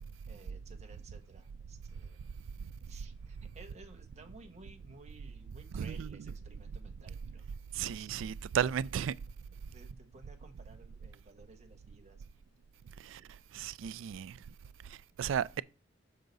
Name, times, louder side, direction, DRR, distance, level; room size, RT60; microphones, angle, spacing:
voice 1, 0.3-2.2 2.9-7.5 7.9-8.3 9.7-12.2 13.2-13.4, right 2 dB, 35° right, 1.1 m, -56 dB
voice 2, 5.7-6.1 7.7-9.2 13.0-13.2 13.5-14.4 14.8-15.6, right 8 dB, 75° right, 0.3 m, -34 dB
6.7 x 4.7 x 4.0 m
head